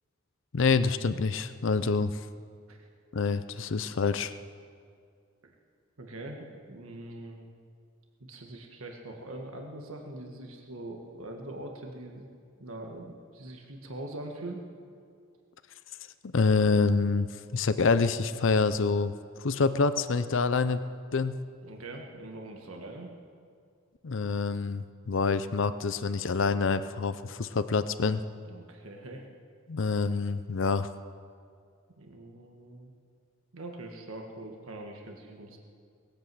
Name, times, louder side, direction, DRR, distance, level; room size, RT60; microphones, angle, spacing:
voice 1, 0.5-2.2 3.1-4.3 16.3-17.3 17.5-20.8 21.1-21.4 24.0-28.2 29.7-30.9, left 4 dB, 65° left, 13 dB, 0.6 m, -26 dB
voice 2, 6.0-7.5 8.2-12.3 12.6-14.7 21.6-23.1 28.4-29.3 32.0-32.9 33.5-35.6, right 1 dB, 80° right, 2 dB, 1.7 m, -42 dB
20.5 x 8.9 x 7.7 m, 2.2 s
head